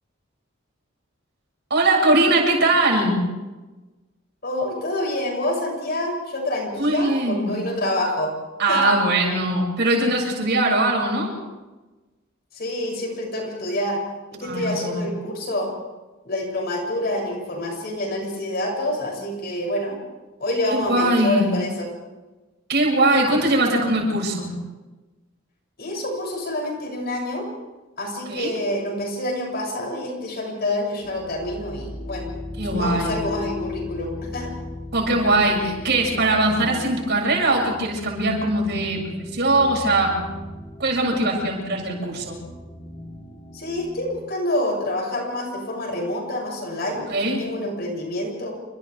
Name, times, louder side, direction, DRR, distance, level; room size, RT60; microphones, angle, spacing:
voice 1, 1.7-3.2 6.8-7.6 8.6-11.4 14.4-15.1 20.7-21.5 22.7-24.5 28.3-28.5 32.6-33.1 34.9-40.2 40.8-42.4 47.1-47.4, right 2 dB, 60° right, 0 dB, 7.4 m, -21 dB
voice 2, 4.4-8.3 8.7-8.9 12.5-14.0 14.3-15.7 16.2-20.0 20.4-21.9 25.8-27.5 28.0-32.3 32.7-34.5 43.5-48.5, left 1 dB, 50° left, 0 dB, 7.9 m, -27 dB
sound 1, 31.0-44.2, left 2 dB, 20° left, 4.1 m, -37 dB
29.0 x 26.0 x 3.7 m, 1.2 s
head